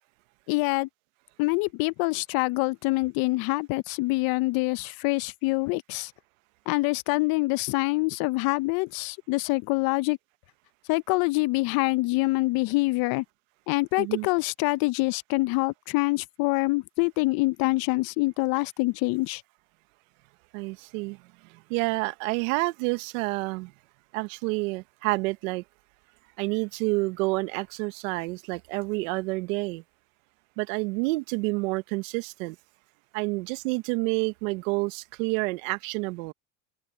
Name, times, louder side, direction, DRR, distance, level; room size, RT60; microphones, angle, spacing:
voice 1, 0.5-0.9 1.4-6.1 6.7-10.2 10.9-13.2 13.7-19.4, left 23 dB, 65° left, 0.8 m, -25 dB
voice 2, 14.0-14.3 20.5-21.2 21.7-23.7 24.1-25.6 26.4-29.8 30.6-32.5 33.1-36.3, right 25 dB, 75° right, 1.4 m, -29 dB
open air
supercardioid pair, 95°, 39 cm